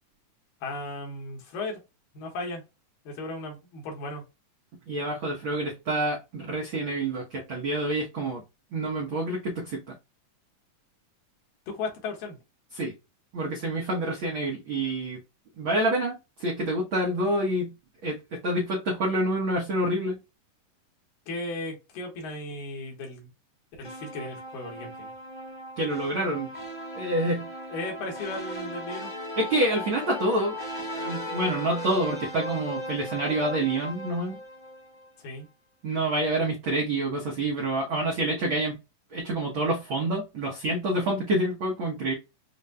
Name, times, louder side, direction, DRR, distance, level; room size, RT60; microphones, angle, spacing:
voice 1, 0.6-1.8 2.1-2.6 3.1-4.2 11.7-12.4 21.3-23.3 23.8-25.1 27.7-29.1 35.2-35.5, left 2 dB, 90° left, 3.0 m, -36 dB
voice 2, 4.9-8.4 8.7-9.9 12.7-12.9 13.3-15.2 15.6-17.7 18.0-20.2 25.8-26.5 26.9-27.5 29.4-30.6 30.9-34.4 35.8-38.8 39.1-42.1, right 1 dB, 85° right, 1.1 m, -27 dB
sound 1, 23.8-35.1, equal, 30° left, 0.7 m, -37 dB
7.0 x 2.6 x 2.2 m
omnidirectional pair, 3.8 m